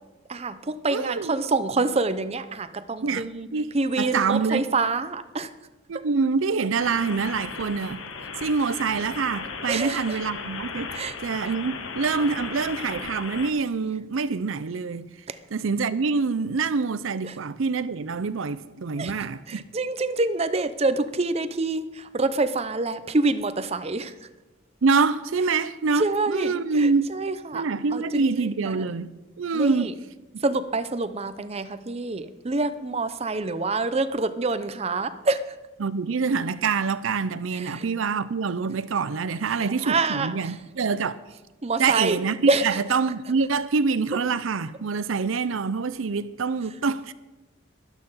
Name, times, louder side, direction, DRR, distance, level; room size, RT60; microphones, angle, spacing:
voice 1, 0.3-3.5 3.7-5.5 9.7-10.2 10.9-11.2 15.3-15.4 17.2-17.4 19.0-24.1 26.0-27.7 27.9-28.8 29.5-29.9 30.4-35.6 37.5-37.8 39.5-40.6 41.6-42.2 42.5-42.8, right 3 dB, 30° right, 0.6 m, -27 dB
voice 2, 0.9-1.3 3.0-3.2 3.5-3.7 4.0-4.6 5.9-8.0 8.4-10.9 11.2-15.1 15.5-19.6 24.8-27.1 27.5-29.1 29.4-29.9 30.3-30.4 35.8-41.2 41.8-42.4 42.6-47.1, right 4 dB, 75° right, 0.5 m, -25 dB
sound 1, 6.8-13.5, left 5 dB, 75° left, 1.2 m, -36 dB
13.0 x 12.0 x 5.5 m
head